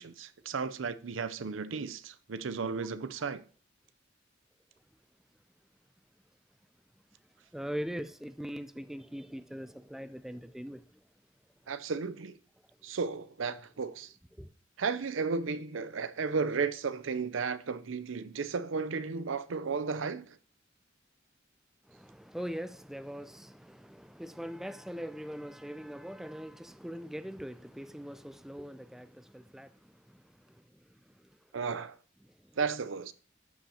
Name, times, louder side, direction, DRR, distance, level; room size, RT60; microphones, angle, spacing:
voice 1, 0.0-3.4 11.7-12.4 12.8-14.1 14.8-20.4 31.5-31.9 32.6-33.1, right 5 dB, 80° right, 0.6 m, -34 dB
voice 2, 7.5-11.0 14.4-14.5 21.9-31.4 32.2-32.5, equal, ahead, 0.3 m, -42 dB
12.5 x 5.8 x 2.8 m
head